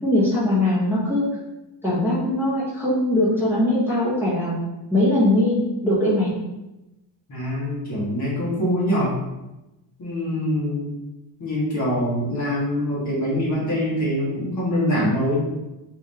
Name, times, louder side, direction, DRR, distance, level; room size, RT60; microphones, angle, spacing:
voice 1, 0.0-1.2 1.8-4.5 4.9-5.5 5.8-6.3, left 1 dB, 5° right, -11 dB, 1.1 m, -20 dB
voice 2, 7.3-9.1 10.0-10.9 11.4-15.4, equal, 35° left, -6 dB, 1.5 m, -24 dB
4.2 x 3.6 x 3.4 m, 0.97 s
cardioid pair, 175°, 50 cm